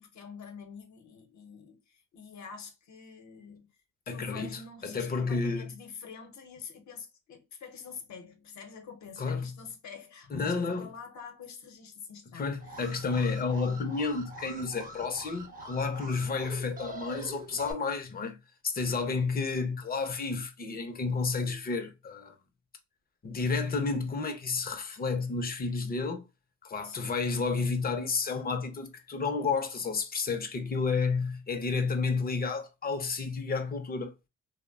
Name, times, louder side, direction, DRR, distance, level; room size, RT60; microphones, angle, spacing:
voice 1, 0.0-3.7 4.1-12.9 26.8-27.2, left 6 dB, 65° left, 0.9 m, -47 dB
voice 2, 4.1-5.7 9.2-9.5 10.3-10.9 12.4-18.4 18.6-22.3 23.2-26.2 26.6-34.1, left 4 dB, 30° left, 0.6 m, -31 dB
Alarm, 12.6-17.7, right 2 dB, 30° right, 0.7 m, -45 dB
2.9 x 2.1 x 2.3 m
cardioid pair, 90°, 30 cm